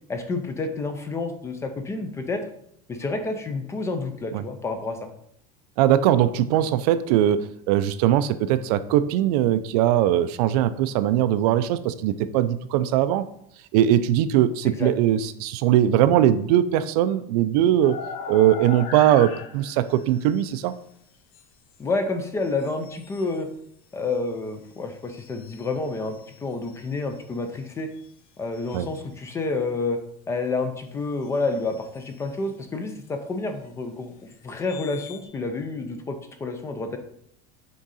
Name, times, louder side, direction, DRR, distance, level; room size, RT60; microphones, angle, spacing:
voice 1, 0.1-2.4 2.9-5.0 14.6-14.9 21.8-23.5 23.9-27.9 28.4-30.0 30.3-37.0, left 3 dB, 15° left, 7 dB, 0.4 m, -29 dB
voice 2, 5.8-13.2 13.7-18.0 18.3-20.7 28.7-28.9, right 11 dB, 75° right, 13 dB, 0.4 m, -20 dB
sound 1, 17.8-20.6 21.3-21.4 22.4-23.4 25.2-27.2 28.0-28.1 28.5-28.8 31.2-31.3 31.7-32.2 34.5-35.2, left 6 dB, 60° left, 0.6 m, -40 dB
6.2 x 3.7 x 4.1 m, 0.70 s
cardioid pair, 170°, 20 cm